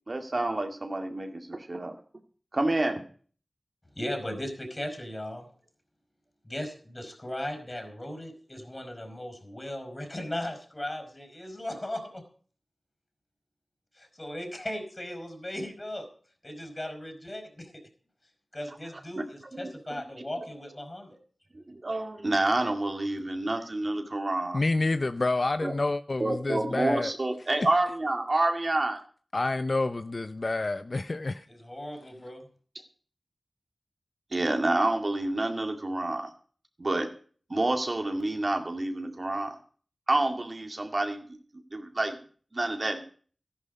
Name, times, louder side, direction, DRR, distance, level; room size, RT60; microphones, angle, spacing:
voice 1, 0.1-1.9 2.5-3.0 19.5-19.6 21.5-24.6 25.6-25.7 26.2-29.0 34.3-36.3 36.8-37.1 37.5-39.6 40.1-41.4 41.7-42.2 42.5-43.1, right 2 dB, 45° right, 5 dB, 2.1 m, -28 dB
voice 2, 3.9-5.5 6.4-12.2 13.9-16.1 16.4-17.8 18.5-21.2 31.5-32.5, left 1 dB, 30° left, 6 dB, 5.0 m, -37 dB
voice 3, 24.5-27.1 29.3-31.5, left 2 dB, 55° left, 11 dB, 0.6 m, -28 dB
13.5 x 11.0 x 5.3 m, 0.43 s
wide cardioid pair, 55°, 0 cm